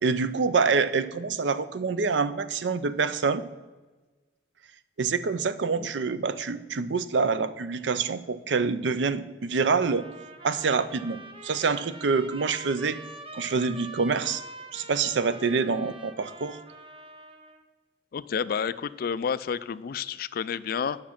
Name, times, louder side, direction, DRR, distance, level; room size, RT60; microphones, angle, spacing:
voice 1, 0.0-3.4 5.0-10.0 10.4-13.0 13.3-14.4 14.7-16.6, right 4 dB, 90° right, 14 dB, 0.5 m, -26 dB
sound 1, 9.8-17.6, right 2 dB, 30° right, 0.8 m, -45 dB
voice 2, 18.1-21.0, left 7 dB, 55° left, 15 dB, 0.3 m, -30 dB
8.6 x 5.8 x 5.8 m, 1.3 s
head